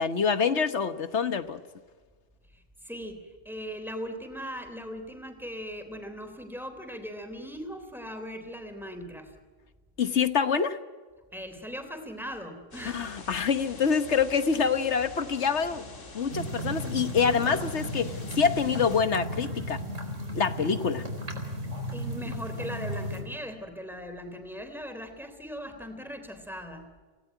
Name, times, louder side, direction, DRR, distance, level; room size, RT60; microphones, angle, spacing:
voice 1, 0.0-1.6 10.0-10.8 12.9-15.9 16.1-19.8 20.3-21.0, left 6 dB, 65° left, 10 dB, 1.4 m, -26 dB
voice 2, 2.5-9.3 11.3-13.2 21.9-26.9, equal, ahead, 6 dB, 3.4 m, -39 dB
sound 1, 12.7-19.0, left 2 dB, 80° left, 2.8 m, -45 dB
sound 2, 16.3-23.2, equal, 80° right, 4.7 m, -35 dB
28.0 x 18.0 x 9.2 m, 1.4 s
omnidirectional pair, 1.3 m